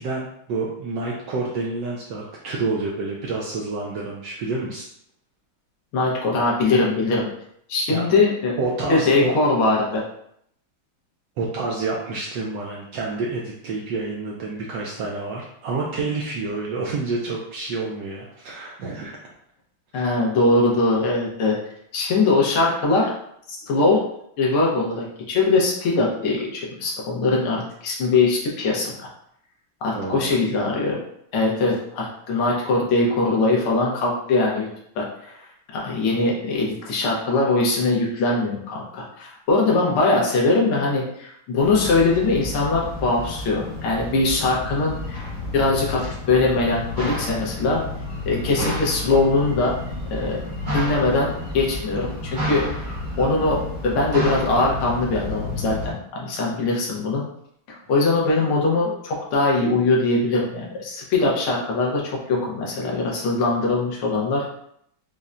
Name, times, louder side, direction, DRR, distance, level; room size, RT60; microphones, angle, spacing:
voice 1, 0.0-4.8 7.9-8.2 8.6-9.3 11.4-19.2 19.9-20.2 29.9-30.4 48.6-48.7, right 3 dB, 75° right, -2 dB, 1.0 m, -28 dB
voice 2, 5.9-7.3 7.7-8.5 8.9-10.0 19.9-21.5 21.9-23.1 23.5-24.0 24.4-29.1 29.8-31.0 31.3-34.7 35.0-47.8 48.2-49.8 50.1-50.4 50.7-57.2 57.7-64.6, left 3 dB, 85° left, -2 dB, 1.7 m, -21 dB
sound 1, 41.6-55.9, left 1 dB, 50° right, 0.5 m, -31 dB
5.4 x 2.1 x 2.4 m, 0.72 s
omnidirectional pair, 2.3 m